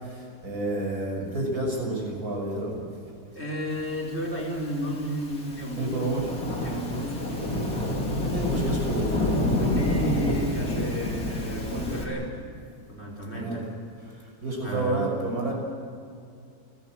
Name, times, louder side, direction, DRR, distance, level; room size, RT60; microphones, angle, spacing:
voice 1, 0.4-2.7 5.8-6.4 7.8-7.9 8.2-9.3 13.3-13.6 14.4-15.5, right 2 dB, 65° right, 0 dB, 6.3 m, -29 dB
voice 2, 3.3-6.1 6.6-7.7 9.6-12.4 12.9-13.7 14.6-15.1, equal, 40° left, -1 dB, 4.8 m, -32 dB
Thunderstorm / Rain, 4.3-12.0, left 1 dB, 60° left, 3.5 m, -28 dB
29.0 x 16.5 x 7.7 m, 2.4 s
omnidirectional pair, 1.7 m